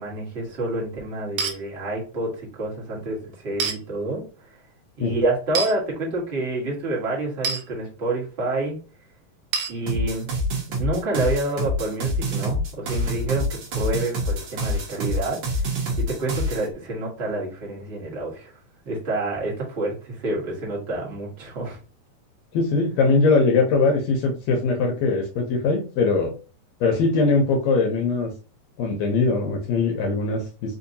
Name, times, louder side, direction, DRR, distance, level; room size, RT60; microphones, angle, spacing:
voice 1, 0.0-4.2 5.0-8.8 9.7-10.3 10.7-15.7 16.0-18.5 18.8-21.8, right 2 dB, 45° right, -3 dB, 0.8 m, -28 dB
sound 1, 1.4-1.6 3.6-3.8 5.5-5.7 7.4-7.6 9.5-9.8, right 5 dB, 85° right, 1.3 m, -25 dB
sound 2, 9.9-16.6, equal, 70° right, 1.1 m, -26 dB
voice 2, 22.5-26.3 26.8-28.3 28.8-30.8, left 3 dB, 75° left, 2 dB, 1.8 m, -21 dB
4.4 x 2.7 x 2.6 m, 0.34 s
omnidirectional pair, 3.4 m